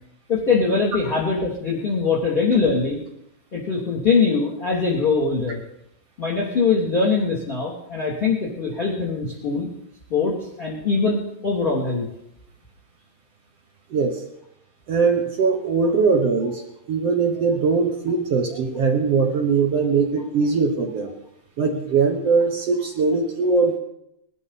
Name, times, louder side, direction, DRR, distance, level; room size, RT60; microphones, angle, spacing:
voice 1, 0.3-3.0 3.5-5.6 6.2-9.7 10.1-12.1, left 4 dB, 15° left, -3 dB, 2.4 m, -22 dB
voice 2, 13.9-14.2 14.9-16.6 16.9-21.1 21.6-23.8, right 4 dB, 70° right, 4 dB, 1.5 m, -21 dB
19.5 x 12.5 x 4.1 m, 0.80 s
omnidirectional pair, 4.3 m